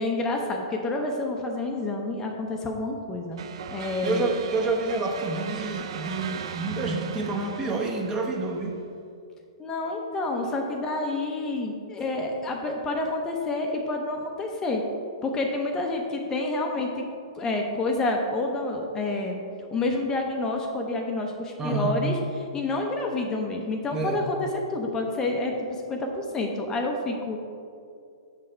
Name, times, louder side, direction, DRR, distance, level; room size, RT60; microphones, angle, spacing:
voice 1, 0.0-3.4 3.7-4.3 9.6-14.8 15.2-17.0 17.4-19.4 19.7-27.4, left 2 dB, 20° left, 2 dB, 0.7 m, -28 dB
sound 1, 3.4-8.8, right 7 dB, 65° right, 0.5 m, -38 dB
voice 2, 4.0-8.8 21.6-21.9 23.9-24.3, right 3 dB, 20° right, 1 dB, 0.9 m, -28 dB
6.4 x 6.4 x 4.4 m, 2.5 s
hypercardioid pair, 135°, 3 cm